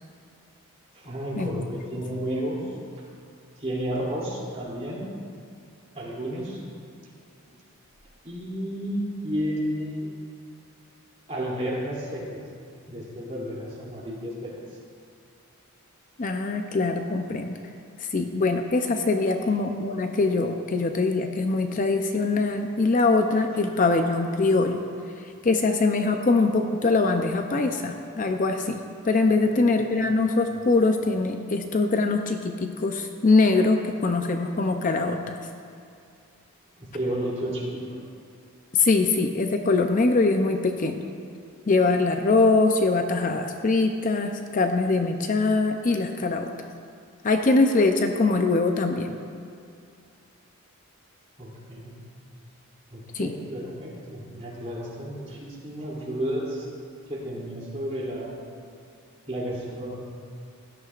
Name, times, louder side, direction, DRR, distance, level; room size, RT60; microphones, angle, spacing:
voice 1, 0.9-2.6 3.6-5.1 5.9-6.6 8.2-10.1 11.3-12.4 12.9-14.5 19.2-19.3 29.6-29.7 36.8-37.8 51.4-51.9 52.9-56.7 57.1-58.4 59.3-60.0, equal, 30° right, -6 dB, 2.8 m, -32 dB
voice 2, 16.2-17.6 18.0-24.8 25.4-35.4 38.7-41.0 41.7-46.5 47.2-49.2 53.1-53.3, left 3 dB, 35° left, 5 dB, 0.5 m, -23 dB
17.0 x 12.5 x 2.5 m, 2.4 s
head